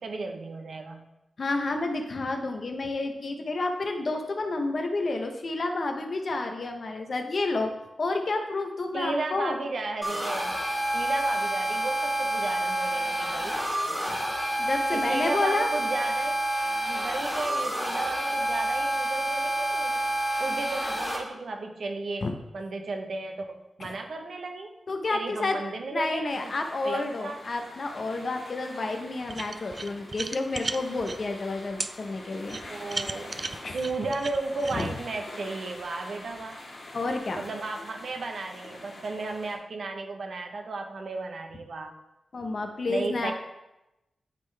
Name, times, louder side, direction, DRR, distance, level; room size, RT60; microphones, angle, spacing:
voice 1, 0.0-1.0 8.9-10.6 10.9-13.6 14.9-16.4 16.9-20.0 20.4-24.7 25.1-26.4 26.8-27.4 32.7-36.6 37.4-41.9 42.9-43.3, right 3 dB, 65° right, 3 dB, 0.9 m, -34 dB
voice 2, 1.4-7.7 8.0-9.6 14.6-15.7 22.2-22.3 23.8-23.9 24.9-25.6 25.9-32.6 33.6-33.8 34.7-34.9 36.9-37.5 42.3-43.3, left 3 dB, 45° left, 4 dB, 0.8 m, -30 dB
sound 1, 10.0-21.2, right 1 dB, ahead, 1.7 m, -28 dB
sound 2, 26.3-39.5, left 2 dB, 65° left, 1.9 m, -45 dB
sound 3, 29.3-31.2 31.8-31.9 32.5-34.9, right 3 dB, 35° right, 0.3 m, -34 dB
11.0 x 3.9 x 3.3 m, 0.95 s
wide cardioid pair, 140°, 0 cm